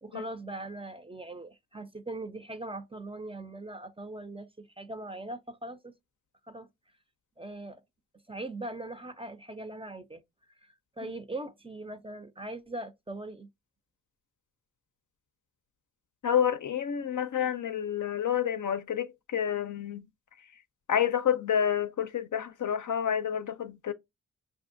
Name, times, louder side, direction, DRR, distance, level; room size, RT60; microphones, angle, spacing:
voice 1, 0.0-5.9 6.5-6.7 7.4-7.8 8.3-10.2 10.6-13.5, right 2 dB, 15° right, 0.4 m, -40 dB
voice 2, 16.2-20.1 20.9-23.9, left 9 dB, 65° left, 0.5 m, -29 dB
5.5 x 2.6 x 2.5 m
cardioid pair, 55°, 33 cm